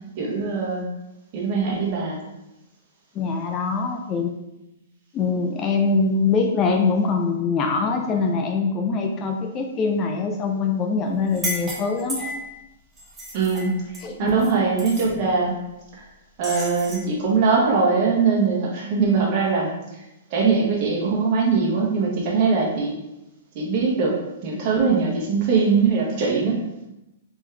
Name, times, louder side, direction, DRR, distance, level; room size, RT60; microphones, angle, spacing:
voice 1, 0.2-0.8 1.3-2.2 13.3-13.8 14.2-15.5 15.9-16.0 16.4-19.7 20.3-22.9 23.5-24.1 24.4-26.6, right 4 dB, 45° right, -3 dB, 1.3 m, -21 dB
voice 2, 3.1-4.4 5.1-12.2 14.0-14.3, left 4 dB, 30° left, 3 dB, 0.5 m, -23 dB
sound 1, 11.3-12.5 13.0-14.5 14.8-15.1 16.4-17.1, equal, 10° right, 1.0 m, -33 dB
3.5 x 3.1 x 3.3 m, 0.93 s
hypercardioid pair, 130°, 0 cm